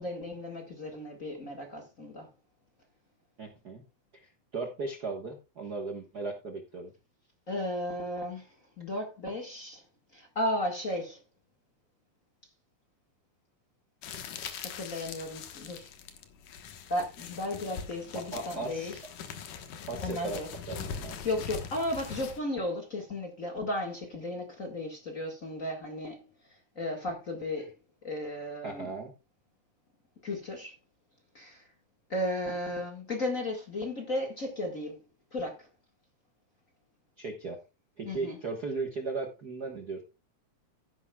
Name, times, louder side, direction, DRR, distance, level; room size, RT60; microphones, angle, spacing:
voice 1, 0.0-2.3 7.5-9.8 10.1-11.2 14.6-15.9 16.9-19.0 20.0-20.5 21.2-26.3 26.8-27.7 28.0-28.9 30.2-30.7 31.3-31.6 32.1-35.0 35.3-35.7 38.0-38.4, left 1 dB, 30° left, 1.8 m, -34 dB
voice 2, 3.4-3.8 4.1-6.9 18.1-18.9 19.9-21.2 28.6-29.1 37.2-37.6 38.0-40.0, right 3 dB, 45° right, 1.4 m, -37 dB
sound 1, 14.0-22.4, left 7 dB, 90° left, 2.9 m, -42 dB
13.0 x 10.5 x 2.3 m
omnidirectional pair, 3.5 m